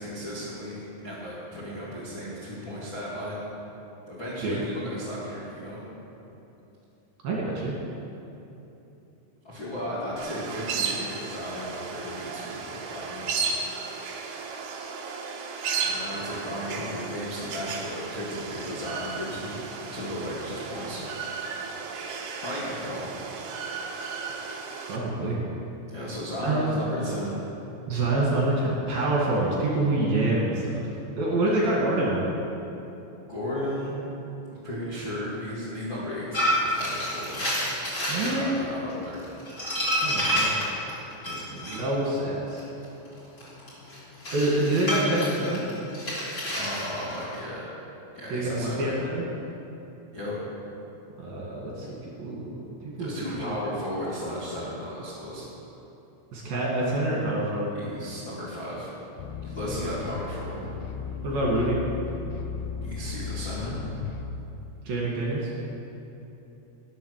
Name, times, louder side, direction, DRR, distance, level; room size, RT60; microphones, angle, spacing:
voice 1, 0.0-3.4 4.1-5.8 9.4-13.3 15.8-19.6 19.9-21.0 22.4-23.1 25.9-27.4 31.4-31.7 33.3-33.9 34.6-37.4 38.1-39.3 46.4-47.7 48.1-48.9 50.1-50.4 53.0-55.4 57.7-58.9 59.4-60.7 62.8-63.8, equal, 40° left, -9 dB, 1.9 m, -35 dB
voice 2, 7.2-7.7 24.9-25.4 26.4-26.7 27.9-30.8 31.2-32.2 38.0-38.5 40.0-40.9 41.3-42.6 44.3-45.6 48.3-49.3 51.2-51.9 52.2-53.1 53.4-53.7 56.3-57.7 59.7-59.9 61.2-61.8 64.9-65.5, right 2 dB, 55° right, -4 dB, 3.5 m, -27 dB
sound 1, 10.2-25.0, right 5 dB, 70° right, 2.6 m, -34 dB
sound 2, 36.3-38.3 38.9-41.8 42.5-47.4, equal, 20° left, 3.5 m, -28 dB
sound 3, 59.2-64.3, left 6 dB, 80° left, 2.8 m, -35 dB
19.0 x 7.8 x 6.6 m, 3.0 s
omnidirectional pair, 5.9 m